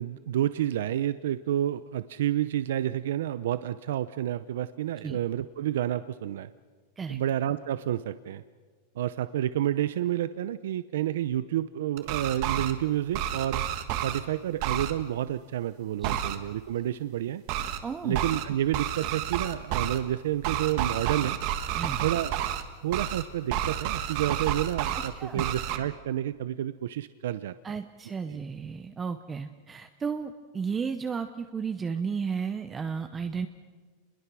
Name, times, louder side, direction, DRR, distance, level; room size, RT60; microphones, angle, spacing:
voice 1, 0.0-6.5 7.1-8.4 9.0-13.6 14.0-17.4 18.0-21.4 22.0-22.3 22.8-27.5 28.3-28.4, right 12 dB, 80° right, 14 dB, 0.7 m, -29 dB
sound 1, 12.0-12.7 13.1-14.2 14.6-14.9 16.0-16.4 17.5-17.8 18.1-18.4 18.7-20.0 20.4-22.6 22.9-23.2 23.5-25.1 25.4-25.8, right 11 dB, 45° right, 1.5 m, -30 dB
voice 2, 17.8-18.2 21.7-22.0 24.9-25.5 27.6-33.5, right 6 dB, 15° right, 8 dB, 0.8 m, -33 dB
28.5 x 21.5 x 6.2 m, 1.5 s
supercardioid pair, 165°, 0 cm